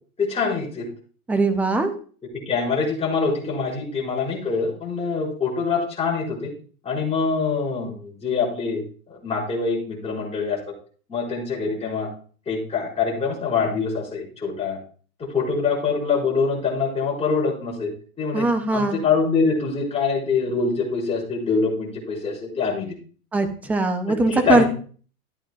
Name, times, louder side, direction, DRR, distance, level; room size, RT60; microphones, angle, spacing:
voice 1, 0.2-0.9 2.3-6.5 6.8-10.6 11.1-12.1 12.4-14.8 15.2-17.9 18.2-23.0 24.1-24.7, left 5 dB, 15° left, -6 dB, 5.0 m, -24 dB
voice 2, 1.3-1.9 18.3-19.0 23.3-24.6, right 2 dB, 5° right, 8 dB, 0.4 m, -20 dB
13.5 x 8.9 x 2.4 m, 0.42 s
hypercardioid pair, 140°, 45 cm